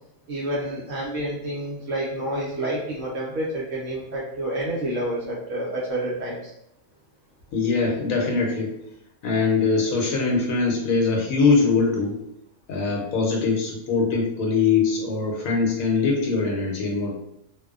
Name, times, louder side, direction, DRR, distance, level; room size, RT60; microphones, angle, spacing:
voice 1, 0.3-6.5, right 1 dB, 65° right, -5 dB, 0.9 m, -29 dB
voice 2, 7.5-8.7 9.2-12.2 12.7-17.1, left 4 dB, 75° left, 0 dB, 1.0 m, -22 dB
2.5 x 2.1 x 2.3 m, 0.78 s
omnidirectional pair, 1.5 m